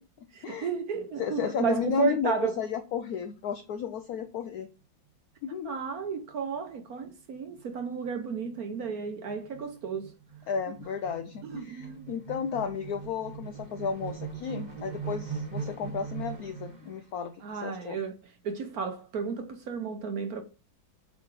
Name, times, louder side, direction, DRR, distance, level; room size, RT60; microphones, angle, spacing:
voice 1, 0.3-2.6 5.6-10.1 11.4-12.1 17.4-18.1 18.4-20.4, right 6 dB, 60° right, 1.0 m, -33 dB
voice 2, 1.2-4.7 5.4-5.7 10.5-18.0, left 7 dB, 80° left, 0.8 m, -33 dB
sound 1, 6.3-6.6 7.0-7.1 7.4-17.0, right 6 dB, 25° right, 1.1 m, -41 dB
8.4 x 3.1 x 4.7 m
omnidirectional pair, 2.2 m